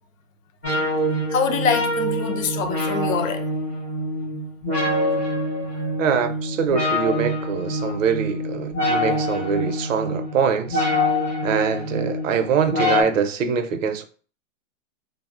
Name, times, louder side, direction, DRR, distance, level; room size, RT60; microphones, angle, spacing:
sound 1, 0.6-13.0, left 1 dB, 10° left, 0.3 m, -25 dB
voice 1, 1.3-3.5 5.7-5.8 8.8-8.9, left 6 dB, 90° left, 0.7 m, -25 dB
voice 2, 6.0-10.8 11.4-14.0, right 6 dB, 75° right, 0.6 m, -23 dB
3.5 x 2.1 x 2.4 m
hypercardioid pair, 155°, 39 cm